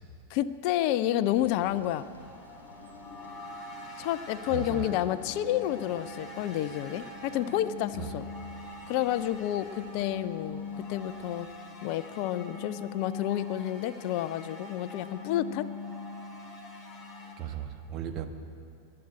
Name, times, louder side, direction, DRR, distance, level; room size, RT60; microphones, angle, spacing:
voice 1, 0.3-2.1 4.0-8.2 8.9-11.5 11.8-15.7, left 12 dB, 45° left, 14 dB, 0.4 m, -30 dB
sound 1, 1.3-11.5, right 2 dB, 85° right, 2.2 m, -55 dB
sound 2, 2.2-17.3, left 3 dB, 10° left, 3.4 m, -42 dB
voice 2, 4.5-4.9 8.0-8.1 17.4-18.3, right 9 dB, 30° right, 6 dB, 1.2 m, -36 dB
21.0 x 7.7 x 8.9 m, 2.5 s
figure-of-eight pair, 90°, 0 cm